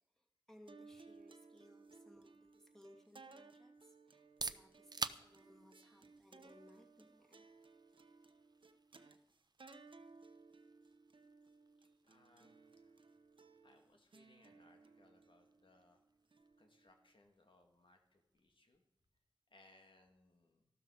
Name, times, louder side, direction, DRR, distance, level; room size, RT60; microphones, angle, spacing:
voice 1, 0.2-7.4, left 1 dB, 5° left, 0 dB, 2.7 m, -64 dB
sound 1, 0.7-17.1, right 3 dB, 85° right, 0.9 m, -62 dB
sound 2, 4.1-19.8, right 3 dB, 55° right, 0.6 m, -53 dB
voice 2, 12.1-13.0 13.6-16.0 16.6-18.8 19.5-20.7, left 2 dB, 85° left, 3 dB, 2.3 m, -69 dB
13.5 x 12.5 x 5.0 m, 0.81 s
wide cardioid pair, 65°, 8 cm